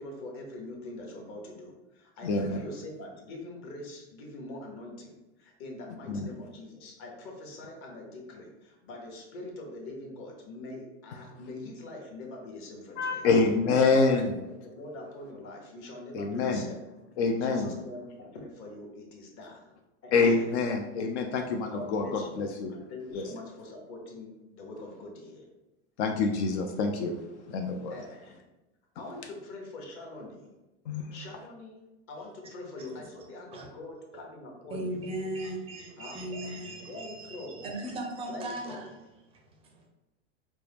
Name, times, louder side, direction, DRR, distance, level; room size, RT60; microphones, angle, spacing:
voice 1, 0.0-13.3 13.7-14.4 14.6-16.8 17.2-19.6 20.0-20.4 21.7-25.5 27.9-28.5 29.0-30.5 30.9-35.0 36.0-36.2 36.8-37.6 38.3-38.8, left 2 dB, 35° left, 0 dB, 0.9 m, -43 dB
voice 2, 2.2-2.6 6.1-6.3 13.0-14.3 16.1-16.6 17.2-17.7 20.1-22.7 23.1-23.2 26.0-27.2 27.5-27.9 30.9-31.0, left 4 dB, 65° left, 3 dB, 0.6 m, -26 dB
voice 3, 34.7-38.9 39.3-39.9, right 1 dB, 15° right, 1 dB, 0.4 m, -37 dB
4.4 x 2.1 x 3.4 m, 1.0 s
supercardioid pair, 135°, 37 cm